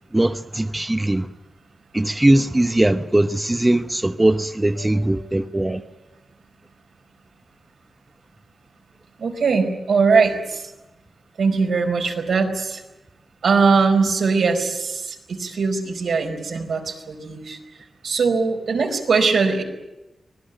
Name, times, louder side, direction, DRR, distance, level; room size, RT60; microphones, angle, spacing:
voice 1, 0.1-1.3 1.9-5.8, right 1 dB, 15° right, 0.9 m, -20 dB
voice 2, 4.8-5.1 9.2-10.7 11.4-12.8 13.4-17.6 18.0-19.6, right 4 dB, 90° right, 4.7 m, -21 dB
25.0 x 18.5 x 9.2 m
wide cardioid pair, 100°, 0 cm